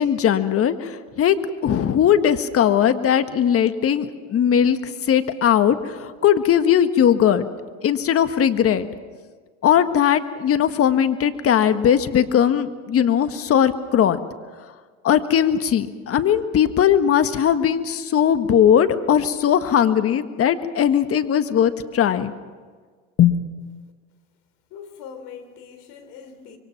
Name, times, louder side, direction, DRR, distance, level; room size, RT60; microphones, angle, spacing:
voice 1, 0.0-1.4 1.6-7.5 7.8-8.9 9.6-14.2 15.0-22.3 23.2-23.4, left 9 dB, 40° left, 1.6 m, -19 dB
voice 2, 24.7-26.6, left 7 dB, 60° left, 3.5 m, -41 dB
25.5 x 24.0 x 5.9 m
hypercardioid pair, 90°, 37 cm